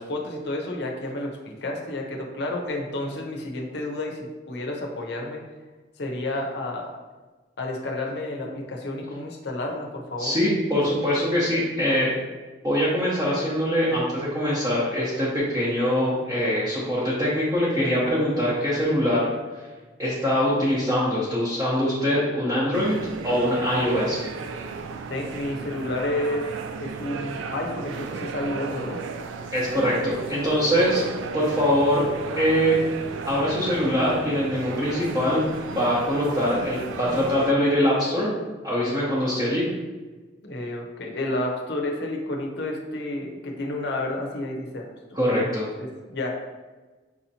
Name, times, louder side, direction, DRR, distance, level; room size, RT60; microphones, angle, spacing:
voice 1, 0.0-5.4 6.0-7.0 7.6-10.3 25.1-26.5 26.8-29.0 40.4-44.9 45.8-46.3, left 1 dB, 60° left, 0 dB, 0.7 m, -30 dB
voice 2, 10.2-12.1 12.6-19.3 20.0-22.9 23.2-24.2 29.5-31.0 31.3-32.0 32.4-32.8 33.3-35.4 35.7-38.3 38.6-39.6 45.1-45.7, equal, 20° right, -9 dB, 0.8 m, -23 dB
sound 1, 22.7-37.5, right 5 dB, 75° right, 0.3 m, -34 dB
6.0 x 2.8 x 2.8 m, 1.3 s
head